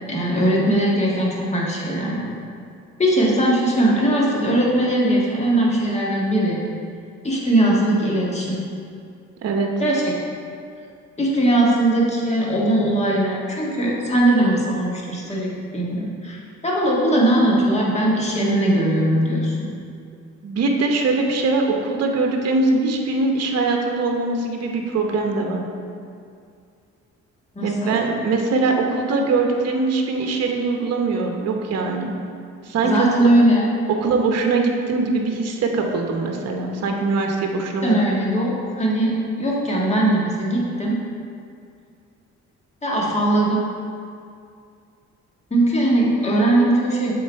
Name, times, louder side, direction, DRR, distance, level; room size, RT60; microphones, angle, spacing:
voice 1, 0.1-2.3 3.0-6.6 7.2-8.6 9.8-10.1 11.2-19.7 27.5-28.0 32.8-33.6 37.8-41.0 42.8-43.6 45.5-47.1, right 1 dB, 20° left, -4 dB, 1.6 m, -20 dB
voice 2, 20.4-25.6 27.6-32.2 32.6-33.1 33.9-38.2, right 3 dB, 55° right, 2 dB, 0.9 m, -22 dB
7.2 x 3.9 x 4.5 m, 2.4 s
cardioid pair, 90°, 30 cm